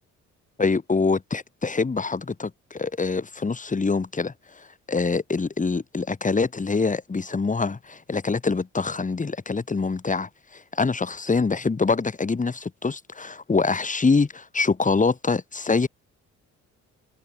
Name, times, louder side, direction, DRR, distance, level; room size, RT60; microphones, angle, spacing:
voice 1, 0.6-15.9, left 4 dB, 25° left, 2.6 m, -25 dB
cardioid pair, 90°, 30 cm